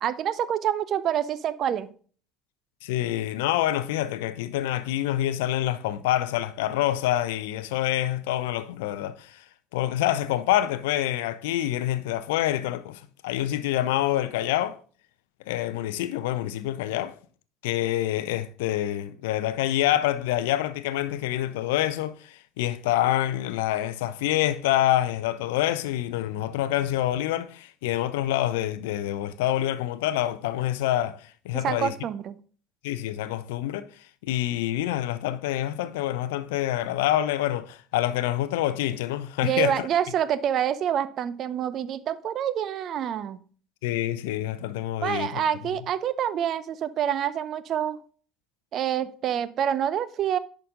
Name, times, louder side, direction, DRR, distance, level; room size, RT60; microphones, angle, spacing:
voice 1, 0.0-1.9 31.6-32.3 39.4-43.4 45.0-48.0 48.7-50.4, right 9 dB, 45° right, 0.4 m, -27 dB
voice 2, 2.8-9.4 9.7-14.8 15.5-17.2 17.6-31.9 32.8-33.9 34.2-39.9 43.8-45.4, left 13 dB, 65° left, 0.4 m, -26 dB
11.0 x 3.9 x 3.7 m
figure-of-eight pair, 60°, 0 cm